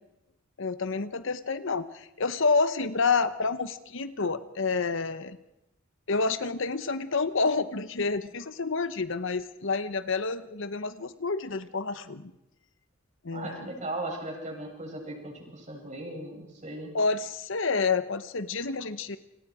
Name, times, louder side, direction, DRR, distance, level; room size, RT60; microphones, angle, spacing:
voice 1, 0.6-5.4 6.1-12.3 13.2-13.7 16.9-19.2, left 4 dB, 65° left, 12 dB, 1.0 m, -29 dB
voice 2, 13.3-16.9, right 1 dB, 35° right, 0 dB, 8.0 m, -37 dB
30.0 x 26.5 x 5.0 m, 0.87 s
head